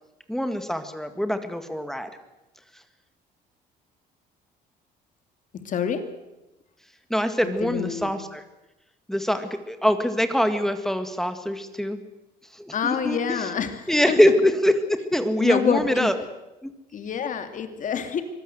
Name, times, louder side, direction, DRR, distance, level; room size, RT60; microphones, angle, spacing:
voice 1, 0.3-2.1 7.1-8.4 9.1-12.0 12.5-13.5 13.9-16.2 16.6-16.7, equal, ahead, 8 dB, 1.9 m, -24 dB
voice 2, 5.6-6.1 7.4-8.1 12.7-13.7 14.1-14.2 15.4-16.1 16.9-18.2, left 7 dB, 50° left, 8 dB, 2.8 m, -27 dB
24.5 x 18.0 x 7.9 m, 0.97 s
cardioid pair, 110°, 17 cm